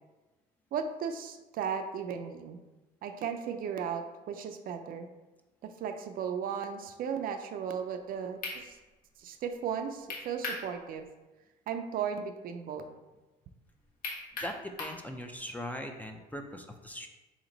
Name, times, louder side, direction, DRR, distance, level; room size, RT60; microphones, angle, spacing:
voice 1, 0.7-2.6 3.0-5.1 5.6-8.8 9.2-11.0 11.7-12.8, right 7 dB, 60° right, 7 dB, 0.4 m, -36 dB
sound 1, 8.0-8.1 8.4-8.6 10.1-10.7 11.0-11.1 14.0-15.0, left 3 dB, 55° left, 1.2 m, -37 dB
voice 2, 14.3-17.1, left 1 dB, 10° left, 4 dB, 0.4 m, -40 dB
4.2 x 2.9 x 3.8 m, 1.1 s
cardioid pair, 110°, 17 cm